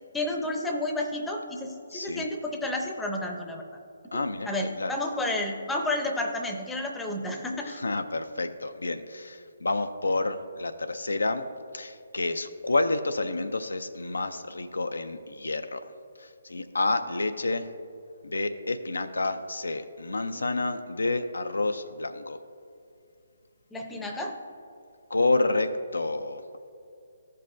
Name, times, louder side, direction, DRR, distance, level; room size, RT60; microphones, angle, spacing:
voice 1, 0.1-3.6 4.1-7.8 23.7-24.3, left 1 dB, 5° left, 2 dB, 0.6 m, -31 dB
voice 2, 1.9-2.3 4.1-4.5 4.8-4.9 7.7-11.5 11.7-15.8 16.2-17.7 18.2-22.4 25.1-26.4, left 2 dB, 80° left, 9 dB, 0.4 m, -29 dB
14.0 x 5.4 x 2.6 m, 2.5 s
figure-of-eight pair, 145°, 0 cm